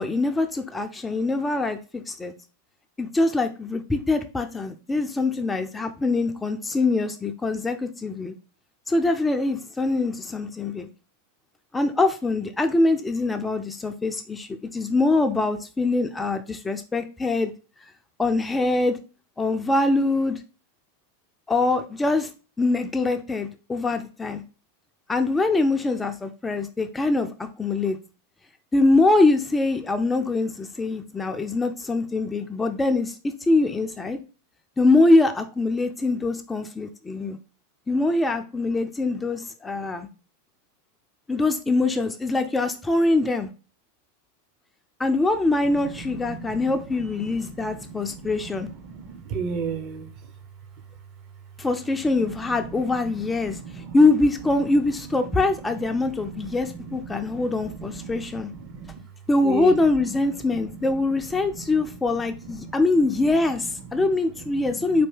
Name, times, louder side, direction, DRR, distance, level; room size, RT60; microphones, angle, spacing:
voice 1, 0.0-2.3 3.0-8.3 8.9-10.9 11.7-17.5 17.8-17.9 18.2-19.0 19.4-20.4 21.5-22.3 22.6-24.4 25.1-28.0 28.7-34.2 34.8-37.4 37.9-40.1 41.3-43.5 45.0-48.7 51.6-58.5 59.3-65.1, left 2 dB, 10° left, 0.4 m, -23 dB
voice 2, 45.7-50.1 52.2-53.1 53.4-54.0 55.3-59.0 59.4-59.8 60.1-60.2 60.5-60.6 61.3-61.8 62.1-62.7 63.9-64.1 64.4-65.0, right 6 dB, 35° right, 0.7 m, -36 dB
4.2 x 2.7 x 3.3 m
figure-of-eight pair, 90°, 0 cm